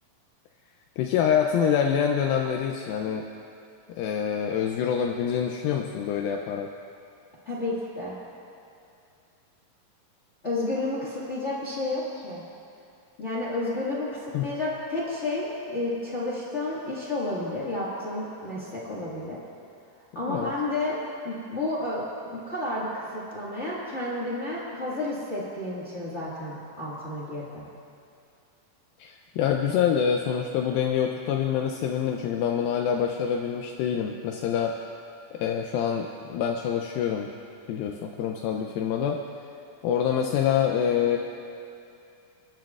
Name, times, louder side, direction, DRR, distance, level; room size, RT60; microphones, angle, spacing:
voice 1, 1.0-3.3 4.0-6.7 14.3-14.5 20.3-20.5 29.0-34.7 35.3-37.3 37.7-39.2 39.8-41.2, left 8 dB, 80° left, 2 dB, 2.3 m, -26 dB
voice 2, 7.4-8.1 10.4-12.4 13.2-19.4 20.1-27.7 38.7-38.9, left 2 dB, 45° left, -7 dB, 0.8 m, -31 dB
25.5 x 11.5 x 2.4 m, 2.5 s
omnidirectional pair, 4.3 m